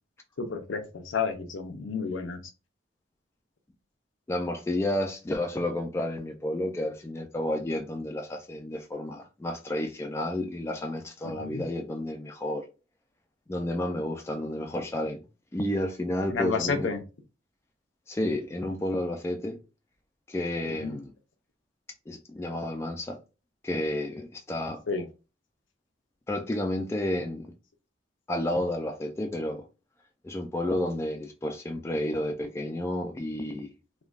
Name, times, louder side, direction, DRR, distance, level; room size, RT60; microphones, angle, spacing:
voice 1, 0.4-2.4 11.2-11.6 16.3-17.0 20.7-21.0 24.9-25.0, left 5 dB, 70° left, 0.6 m, -31 dB
voice 2, 4.3-12.6 13.5-15.2 15.5-16.9 18.1-19.6 20.3-21.1 22.1-23.2 23.6-24.8 26.3-27.5 28.3-29.6 30.2-33.7, left 1 dB, 15° left, 0.3 m, -31 dB
3.2 x 2.2 x 2.4 m
head